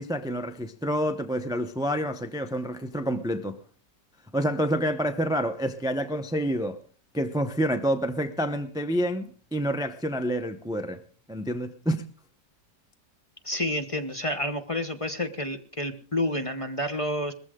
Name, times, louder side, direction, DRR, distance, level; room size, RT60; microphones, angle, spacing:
voice 1, 0.0-3.6 4.3-6.8 7.1-11.0 11.3-12.0, equal, 5° right, 0.4 m, -28 dB
voice 2, 13.4-17.3, left 1 dB, 25° left, 0.8 m, -29 dB
20.0 x 14.5 x 3.8 m
omnidirectional pair, 1.9 m